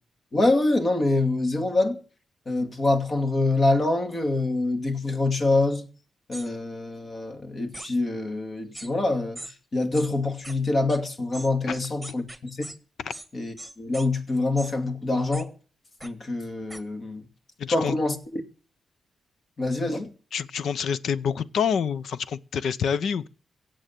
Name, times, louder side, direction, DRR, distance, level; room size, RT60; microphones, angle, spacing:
voice 1, 0.3-2.0 2.5-5.8 6.3-9.4 9.7-12.7 13.3-15.5 16.0-17.2 17.7-18.4 19.6-20.1, left 2 dB, 45° left, 2.6 m, -25 dB
sound 1, 6.3-6.5 7.7-7.9 8.7-8.9 9.4-9.5 9.9-10.1 10.4-10.5 10.9-11.0 11.3-12.8 13.1-13.3 13.6-14.1 14.6-14.7 15.3-15.4 16.0-16.1 16.7-16.8, right 1 dB, 5° right, 1.8 m, -40 dB
voice 2, 17.6-17.9 20.3-23.3, left 7 dB, 80° left, 0.7 m, -27 dB
16.5 x 7.8 x 9.1 m
cardioid pair, 80°, 0 cm